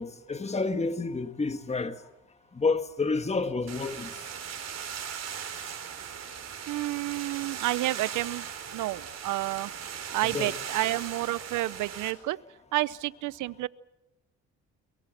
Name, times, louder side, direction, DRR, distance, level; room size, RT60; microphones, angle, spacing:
voice 1, 0.0-1.9 2.6-4.1 10.3-10.5, left 3 dB, 20° left, 1.4 m, -29 dB
sound 1, 3.7-12.1, right 8 dB, 60° right, 4.3 m, -38 dB
voice 2, 6.7-8.5 8.7-9.7 10.1-12.4 12.7-13.7, right 17 dB, 90° right, 0.7 m, -30 dB
23.0 x 22.5 x 7.3 m
cardioid pair, 90°, 30 cm